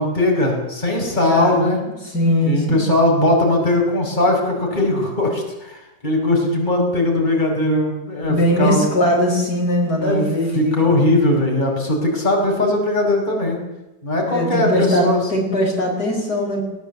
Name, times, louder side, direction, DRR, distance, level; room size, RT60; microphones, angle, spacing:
voice 1, 0.0-1.8 2.4-8.8 9.8-10.2 10.5-13.6 14.0-15.2, left 1 dB, 25° left, 0 dB, 5.7 m, -19 dB
voice 2, 1.3-1.7 2.0-2.8 8.3-10.9 14.2-15.1 15.3-16.6, equal, 55° left, -1 dB, 5.6 m, -20 dB
20.5 x 18.5 x 8.3 m, 0.99 s
omnidirectional pair, 2.0 m